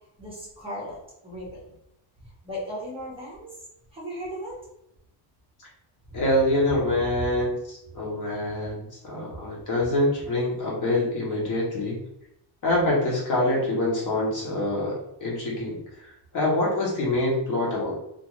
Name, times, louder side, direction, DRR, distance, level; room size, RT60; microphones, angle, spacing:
voice 1, 0.2-1.6 2.2-3.6 3.9-4.5 6.1-6.2 6.7-7.5 9.3-9.4, equal, 10° right, -7 dB, 0.7 m, -36 dB
voice 2, 6.1-12.0 12.6-18.0, left 1 dB, 40° left, -3 dB, 0.8 m, -25 dB
2.4 x 2.3 x 2.9 m, 0.81 s
cardioid pair, 170°, 45 cm